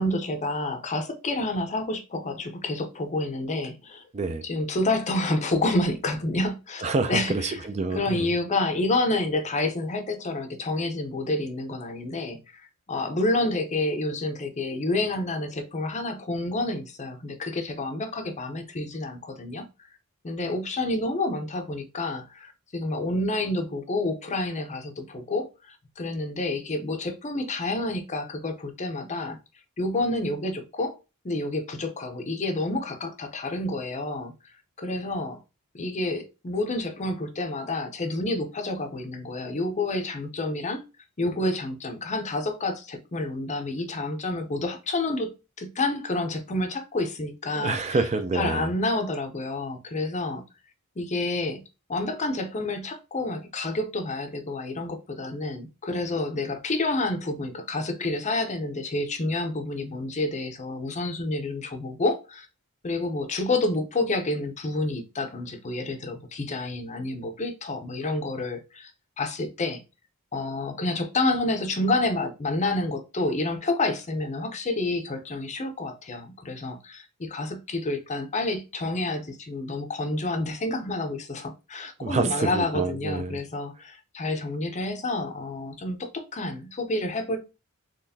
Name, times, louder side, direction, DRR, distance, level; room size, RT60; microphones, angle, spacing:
voice 1, 0.0-4.1 4.4-7.6 7.9-12.6 12.9-19.7 20.2-29.4 29.8-31.0 31.2-34.3 34.8-35.4 35.7-40.8 41.2-47.8 48.3-50.4 51.0-51.6 51.9-62.5 62.8-68.9 69.2-69.8 70.3-87.4, left 2 dB, 30° left, 0.6 m, -29 dB
voice 2, 6.8-8.3 47.6-48.7 82.0-83.4, right 3 dB, 30° right, 0.4 m, -27 dB
4.1 x 3.1 x 2.7 m
head